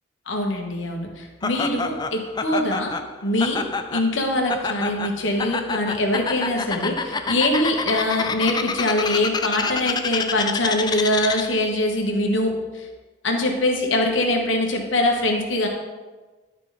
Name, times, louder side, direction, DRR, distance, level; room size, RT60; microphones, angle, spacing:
voice 1, 0.3-2.9 3.2-3.6 3.9-12.8 13.2-15.7, left 1 dB, 70° left, 1 dB, 1.3 m, -23 dB
Laughter, 1.4-11.7, left 4 dB, 20° left, 0.3 m, -28 dB
11.5 x 4.9 x 4.0 m, 1.3 s
head